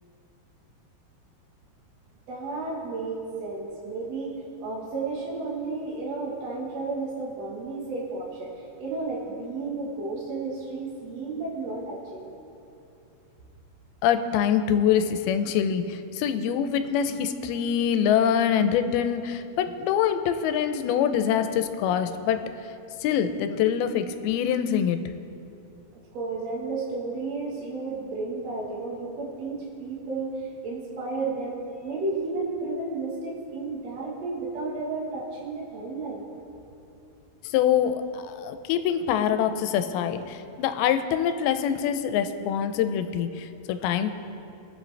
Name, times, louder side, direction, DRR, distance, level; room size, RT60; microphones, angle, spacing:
voice 1, 2.3-4.4 4.6-12.3 26.1-36.2, right 3 dB, 55° right, -5 dB, 2.1 m, -32 dB
voice 2, 14.0-22.5 23.0-25.0 37.4-44.1, left 8 dB, 90° left, 9 dB, 2.5 m, -25 dB
21.0 x 7.7 x 3.3 m, 2.7 s
omnidirectional pair, 4.3 m